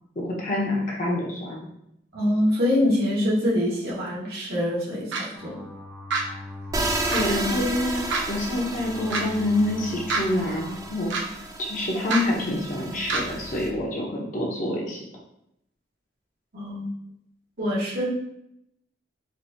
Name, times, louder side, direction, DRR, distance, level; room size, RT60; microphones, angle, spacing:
voice 1, 0.2-1.6 7.1-8.0 8.3-11.1 11.6-15.0, left 1 dB, 45° left, -2 dB, 0.8 m, -26 dB
voice 2, 2.1-5.6 16.5-16.9 17.6-18.1, left 1 dB, 55° right, -7 dB, 1.4 m, -24 dB
sound 1, 5.1-5.3 6.1-6.2 7.1-7.3 8.1-8.2 9.1-9.2 10.1-10.2 11.1-11.2 12.1-12.2 13.1-13.2, right 4 dB, 80° right, 0.6 m, -25 dB
sound 2, 5.3-10.9, left 2 dB, ahead, 0.8 m, -41 dB
sound 3, 6.7-13.7, right 2 dB, 20° right, 0.3 m, -32 dB
4.3 x 2.6 x 2.7 m, 0.79 s
head